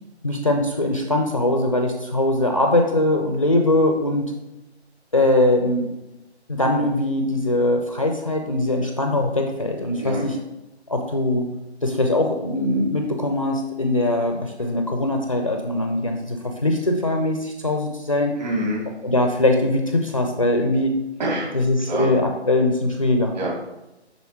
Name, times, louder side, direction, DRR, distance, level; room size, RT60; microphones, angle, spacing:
voice 1, 0.2-4.3 5.1-5.9 6.5-10.3 10.9-11.5 11.8-18.3 19.0-21.0 21.5-23.3, left 1 dB, 30° left, 3 dB, 0.5 m, -21 dB
voice 2, 18.4-18.8 21.2-22.1 23.3-23.6, right 1 dB, 40° right, -4 dB, 2.8 m, -26 dB
10.5 x 4.1 x 3.5 m, 0.95 s
figure-of-eight pair, 160°, 34 cm